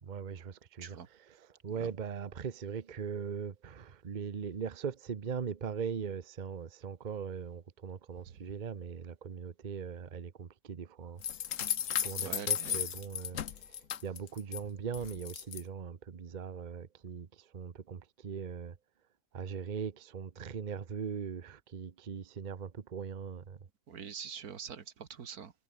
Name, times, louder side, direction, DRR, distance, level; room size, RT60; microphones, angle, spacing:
voice 1, 0.0-11.5 11.8-18.8 19.3-23.6, right 6 dB, 35° right, 1.0 m, -40 dB
sound 1, 11.2-14.6 14.9-15.6, left 9 dB, 60° left, 1.3 m, -35 dB
voice 2, 12.2-12.8 23.9-25.5, right 7 dB, 85° right, 2.0 m, -44 dB
omnidirectional pair, 1.6 m